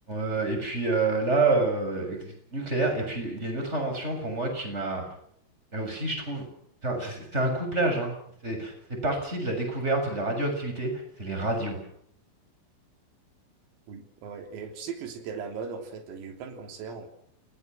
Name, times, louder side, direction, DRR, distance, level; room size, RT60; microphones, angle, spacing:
voice 1, 0.1-5.0 5.7-6.4 6.8-11.8, right 2 dB, 10° right, 4 dB, 7.0 m, -28 dB
voice 2, 13.9-17.1, right 6 dB, 85° right, 6 dB, 6.0 m, -38 dB
28.5 x 20.0 x 6.2 m, 0.68 s
omnidirectional pair, 6.0 m